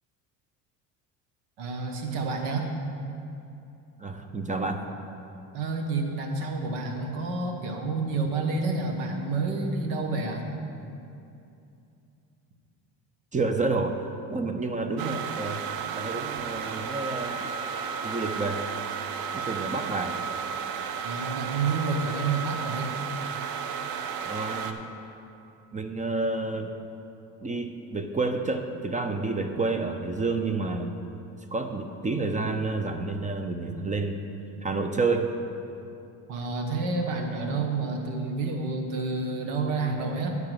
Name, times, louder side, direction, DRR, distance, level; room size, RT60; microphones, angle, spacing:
voice 1, 1.6-2.7 5.5-10.4 21.0-23.0 36.3-40.4, right 3 dB, 85° right, 3 dB, 1.2 m, -29 dB
voice 2, 4.0-4.9 13.3-15.6 15.9-17.5 18.0-18.7 19.3-20.2 24.3-24.9 25.7-26.7 27.4-30.9 31.5-34.2 34.6-35.3, right 3 dB, 20° right, 6 dB, 0.5 m, -29 dB
sound 1, 15.0-24.7, right 6 dB, 55° right, 0.7 m, -33 dB
10.5 x 4.0 x 7.5 m, 2.7 s
supercardioid pair, 95°, 42 cm